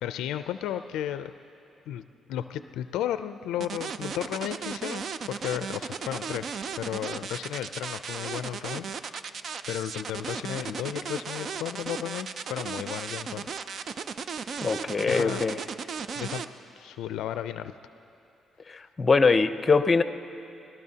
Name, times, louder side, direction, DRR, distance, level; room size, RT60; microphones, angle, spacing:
voice 1, 0.0-1.3 1.9-2.0 2.3-6.5 6.8-9.2 9.7-13.5 15.0-15.5 16.2-16.4 16.8-17.7, left 11 dB, 90° left, 11 dB, 0.4 m, -34 dB
sound 1, 3.6-16.4, right 6 dB, 55° right, 0.5 m, -35 dB
voice 2, 14.6-15.6 18.7-20.0, left 4 dB, 30° left, 11 dB, 0.6 m, -22 dB
24.5 x 18.0 x 2.8 m, 2.8 s
cardioid pair, 90°, 0 cm